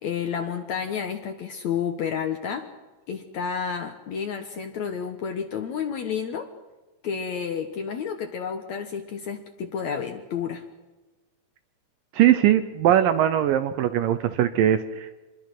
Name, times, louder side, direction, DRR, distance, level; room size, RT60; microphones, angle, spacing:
voice 1, 0.0-2.7 3.1-6.5 7.0-10.6, left 7 dB, 70° left, 6 dB, 1.7 m, -30 dB
voice 2, 12.1-15.2, right 11 dB, 75° right, 10 dB, 2.0 m, -21 dB
26.0 x 21.5 x 6.0 m, 1.2 s
omnidirectional pair, 4.9 m